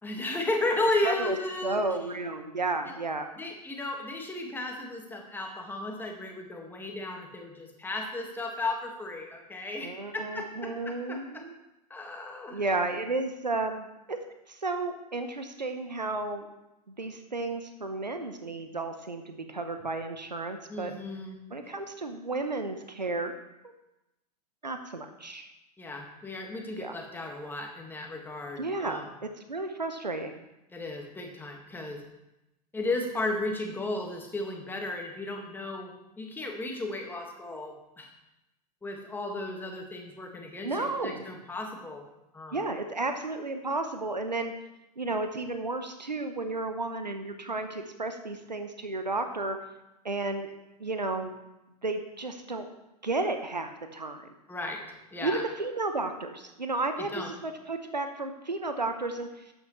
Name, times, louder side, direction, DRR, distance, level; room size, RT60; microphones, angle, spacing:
voice 1, 0.0-1.8 3.4-11.4 11.9-12.6 20.7-21.4 25.8-29.1 30.7-32.0 32.7-38.1 38.8-42.1 42.3-42.6 54.5-54.9 55.1-55.4 57.0-57.3, left 2 dB, 10° left, 2 dB, 1.9 m, -34 dB
voice 2, 1.0-1.4 1.6-3.3 9.8-11.5 12.5-14.2 14.5-16.5 17.0-20.9 21.5-23.3 24.6-25.5 26.8-26.9 28.6-30.4 40.6-41.2 42.5-44.5 45.0-49.6 50.0-50.5 50.8-51.3 51.8-52.7 53.0-54.3 55.2-59.3, right 2 dB, 85° right, 7 dB, 1.0 m, -32 dB
12.5 x 9.0 x 3.2 m, 0.94 s
figure-of-eight pair, 90°, 21 cm